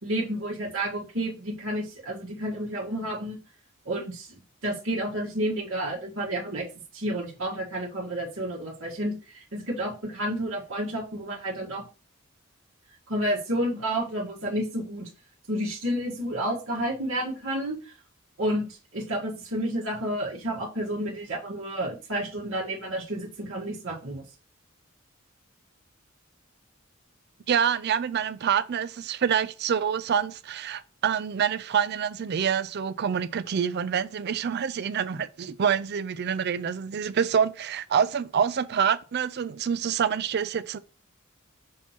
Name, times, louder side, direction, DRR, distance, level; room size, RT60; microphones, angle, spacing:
voice 1, 0.0-3.4 3.8-6.7 6.9-11.8 13.1-15.1 15.5-17.9 18.4-24.2, right 1 dB, 70° right, 1.6 m, -30 dB
voice 2, 27.5-40.8, right 7 dB, 55° right, 0.4 m, -26 dB
6.3 x 2.9 x 5.6 m
head